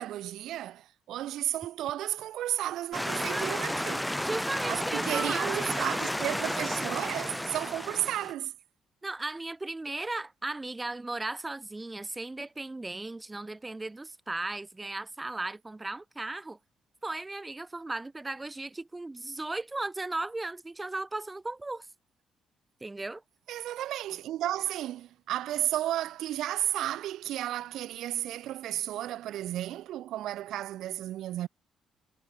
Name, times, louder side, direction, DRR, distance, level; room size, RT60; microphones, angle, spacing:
voice 1, 0.0-4.0 4.7-8.5 23.5-31.5, right 13 dB, 80° right, 0.7 m, -33 dB
sound 1, 2.9-8.3, equal, 5° left, 1.0 m, -32 dB
voice 2, 3.3-3.6 4.2-5.8 9.0-16.6 17.0-21.9 22.8-23.2, right 2 dB, 15° right, 2.3 m, -36 dB
cardioid pair, 90°, 0 cm